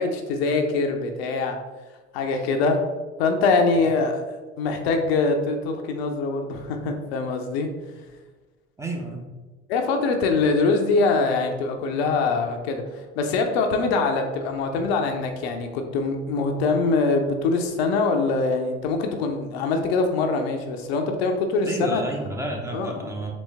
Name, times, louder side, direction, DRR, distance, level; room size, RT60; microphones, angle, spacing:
voice 1, 0.0-1.6 2.1-2.8 3.2-7.7 9.7-12.8 13.2-22.0 22.7-23.1, left 3 dB, 65° left, 4 dB, 0.6 m, -23 dB
voice 2, 8.8-9.3 13.7-13.9 21.6-23.3, right 1 dB, 10° right, 0 dB, 0.7 m, -31 dB
4.1 x 3.0 x 3.4 m, 1.2 s
figure-of-eight pair, 60°, 34 cm